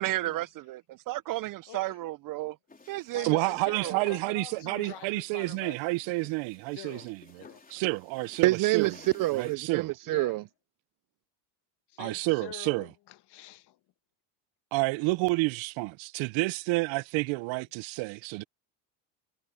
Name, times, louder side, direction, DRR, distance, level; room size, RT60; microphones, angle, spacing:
voice 1, 0.0-2.6 2.9-3.4 3.6-4.0 8.4-10.4, right 18 dB, 45° right, 0.4 m, -29 dB
voice 2, 1.7-2.0 3.1-6.0 6.7-7.7 10.0-10.4 11.9-13.8, left 15 dB, 55° left, 1.5 m, -46 dB
sound 1, 2.7-9.6, left 3 dB, 15° left, 4.3 m, -57 dB
voice 3, 3.2-7.2 7.7-8.9 9.3-9.9 12.0-12.9 14.7-18.4, right 24 dB, 70° right, 0.8 m, -29 dB
supercardioid pair, 105°, 49 cm